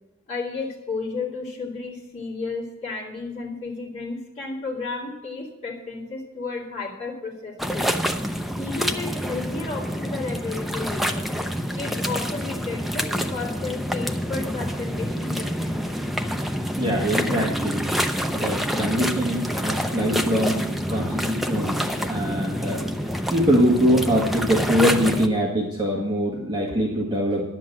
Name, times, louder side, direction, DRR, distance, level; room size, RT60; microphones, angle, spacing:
voice 1, 0.3-7.9 8.6-11.3 11.7-16.0, left 3 dB, 30° left, -5 dB, 2.9 m, -33 dB
sound 1, 7.6-25.3, equal, ahead, 0.6 m, -27 dB
voice 2, 16.8-17.8 18.3-20.6 20.9-22.9 23.3-27.4, equal, 20° right, -3 dB, 1.7 m, -23 dB
10.5 x 7.6 x 7.5 m, 1.0 s
head